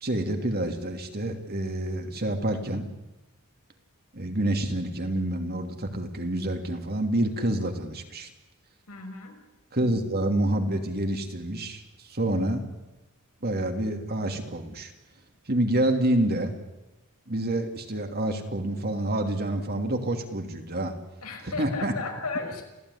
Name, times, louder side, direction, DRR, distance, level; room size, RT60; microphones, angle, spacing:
voice 1, 0.0-2.9 4.1-8.3 9.7-12.7 13.4-14.9 15.5-16.5 17.3-20.9 21.4-21.9, right 1 dB, 45° right, 5 dB, 3.0 m, -28 dB
voice 2, 8.9-9.4 21.2-22.6, left 3 dB, 90° left, 3 dB, 6.3 m, -34 dB
28.0 x 16.5 x 9.9 m, 1.0 s
head